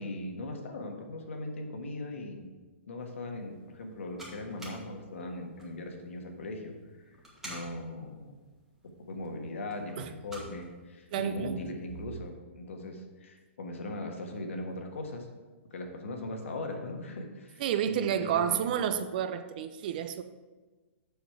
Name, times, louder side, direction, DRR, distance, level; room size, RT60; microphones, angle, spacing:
voice 1, 0.0-2.5 2.9-7.2 7.4-8.3 9.1-15.3 15.7-18.7, left 2 dB, 85° left, 3 dB, 1.5 m, -39 dB
sound 1, 3.0-12.2, right 1 dB, 5° right, 1.4 m, -52 dB
voice 2, 11.1-11.6 17.6-20.2, right 9 dB, 45° right, 11 dB, 0.5 m, -30 dB
7.1 x 6.2 x 4.7 m, 1.3 s
hypercardioid pair, 160°, 7 cm